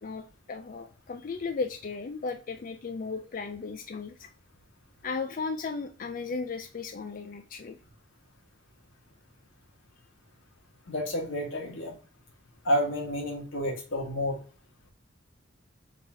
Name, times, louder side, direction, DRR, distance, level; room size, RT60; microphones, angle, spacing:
voice 1, 0.0-4.3 5.0-7.8, left 4 dB, 45° left, 6 dB, 0.4 m, -35 dB
voice 2, 10.9-11.9 12.6-14.4, equal, 85° left, 1 dB, 1.5 m, -30 dB
3.9 x 2.8 x 4.7 m, 0.37 s
head